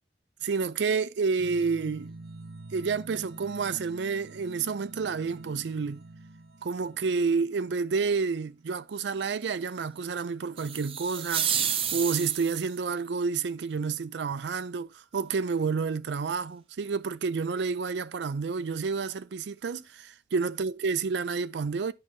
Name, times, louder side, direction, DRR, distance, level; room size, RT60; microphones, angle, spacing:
voice 1, 0.4-2.1 2.7-6.0 6.6-11.7 11.9-21.9, right 5 dB, 80° right, 0.4 m, -29 dB
sound 1, 1.4-8.0, right 2 dB, 65° right, 0.8 m, -46 dB
sound 2, 10.6-12.8, right 8 dB, 30° right, 0.5 m, -30 dB
9.7 x 3.7 x 3.8 m
head